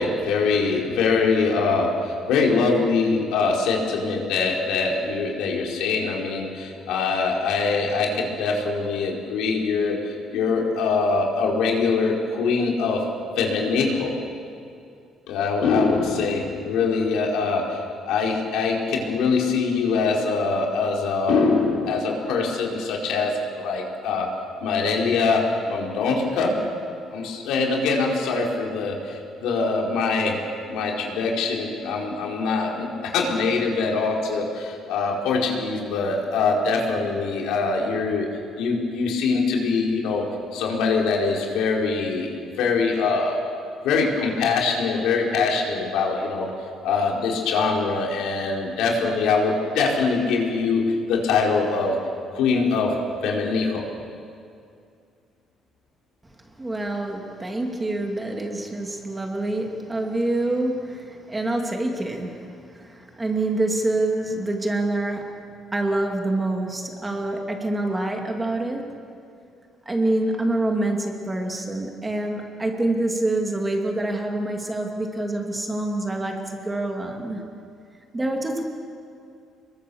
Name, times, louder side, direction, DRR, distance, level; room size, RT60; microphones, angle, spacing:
voice 1, 0.0-13.1 13.4-14.2 15.3-24.3 24.6-26.6 27.1-30.4 30.7-38.3 38.6-42.3 42.6-43.4 43.8-46.5 46.8-52.0 52.3-53.8, left 4 dB, 85° left, -1 dB, 4.7 m, -23 dB
voice 2, 56.6-65.4 65.7-68.9 69.9-77.4 78.1-78.6, right 2 dB, 10° right, 2 dB, 2.5 m, -26 dB
29.5 x 22.5 x 7.1 m, 2.4 s
cardioid pair, 165°, 0 cm